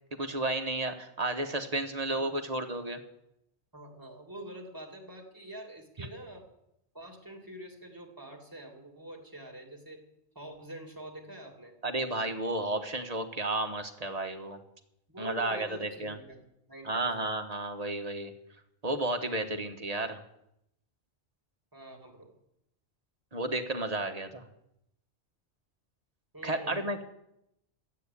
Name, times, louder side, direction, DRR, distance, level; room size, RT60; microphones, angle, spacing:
voice 1, 0.1-3.0 6.0-6.1 11.8-14.6 15.2-16.2 16.8-18.3 18.8-20.2 23.3-24.5 26.4-27.0, right 2 dB, 35° right, 5 dB, 1.2 m, -32 dB
voice 2, 2.1-2.5 3.7-6.5 6.9-10.0 10.3-11.8 15.1-17.2 21.7-22.3 26.3-26.9, right 1 dB, 20° right, 0 dB, 2.6 m, -46 dB
13.0 x 8.6 x 8.3 m, 0.81 s
omnidirectional pair, 1.1 m